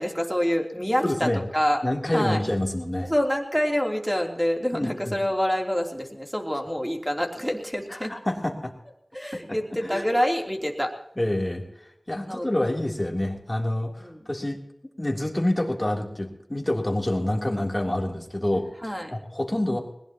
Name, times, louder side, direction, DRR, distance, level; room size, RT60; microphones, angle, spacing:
voice 1, 0.0-1.8 2.1-2.4 3.1-8.1 9.1-10.9 12.2-12.5 14.0-14.2 18.8-19.1, equal, ahead, 1 dB, 3.3 m, -26 dB
voice 2, 1.0-1.4 1.8-3.1 4.7-5.2 7.9-8.7 9.8-10.0 11.2-14.6 15.0-19.8, left 1 dB, 30° left, 1 dB, 3.3 m, -27 dB
21.0 x 20.0 x 3.0 m, 0.81 s
wide cardioid pair, 45°, 0 cm